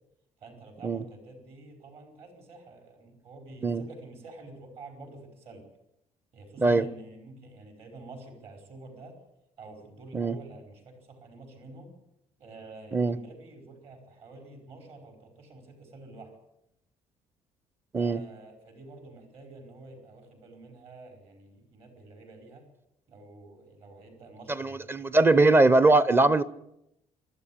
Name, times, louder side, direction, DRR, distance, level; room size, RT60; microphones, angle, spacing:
voice 1, 0.4-5.6 6.3-9.1 9.6-11.9 12.4-16.3 18.0-22.7 23.1-25.1, right 2 dB, 50° right, 4 dB, 4.9 m, -48 dB
voice 2, 24.5-26.4, right 2 dB, 20° right, 17 dB, 0.8 m, -21 dB
27.0 x 13.0 x 8.7 m, 0.82 s
cardioid pair, 160°, 13 cm